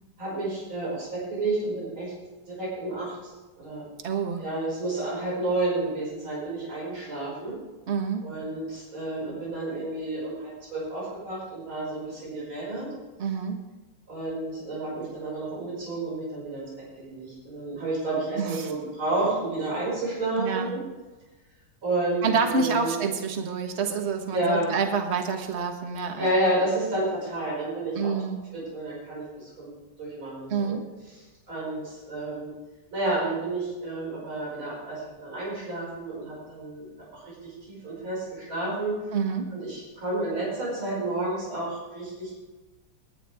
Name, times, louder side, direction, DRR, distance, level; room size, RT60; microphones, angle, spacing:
voice 1, 0.2-2.1 2.5-3.8 4.4-7.6 8.2-12.9 14.1-20.8 21.8-23.0 24.3-24.7 26.2-28.1 28.5-29.7 30.0-30.8 31.5-32.5 32.9-36.9 37.1-39.2 39.5-42.3, right 2 dB, 65° right, -6 dB, 6.3 m, -30 dB
voice 2, 4.0-4.4 7.9-8.3 13.2-13.6 18.4-18.7 20.4-20.7 22.2-26.3 27.9-28.4 30.5-30.8 39.1-39.5, right 5 dB, 35° right, 5 dB, 1.3 m, -27 dB
20.5 x 10.5 x 3.5 m, 1.2 s
omnidirectional pair, 2.4 m